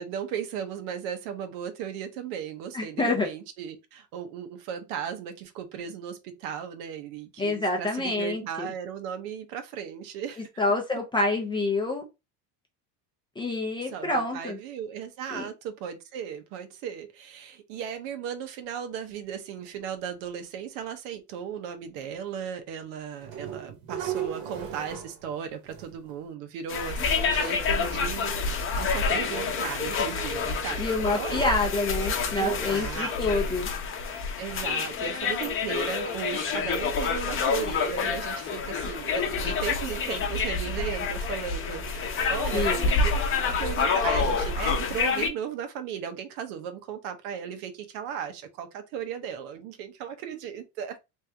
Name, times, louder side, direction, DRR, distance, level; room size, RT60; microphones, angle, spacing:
voice 1, 0.0-10.5 13.9-31.6 32.4-33.7 34.4-43.1 43.6-51.0, right 8 dB, 85° right, 1.0 m, -36 dB
voice 2, 2.7-3.3 7.4-8.7 10.6-12.0 13.4-14.6 15.3-15.5 30.8-33.7 42.5-42.9, left 2 dB, 10° left, 0.4 m, -27 dB
sound 1, 23.2-25.4 25.7-26.1 26.9-27.0 27.3-27.6 28.5-28.6 29.1-30.1 30.4-30.6 31.1-31.7 31.9-32.0 32.4-32.8 34.5-34.6 35.0-35.1, right 9 dB, 50° right, 1.1 m, -38 dB
sound 2, 26.7-45.3, left 4 dB, 30° left, 0.8 m, -28 dB
3.4 x 2.7 x 3.4 m
cardioid pair, 160°, 44 cm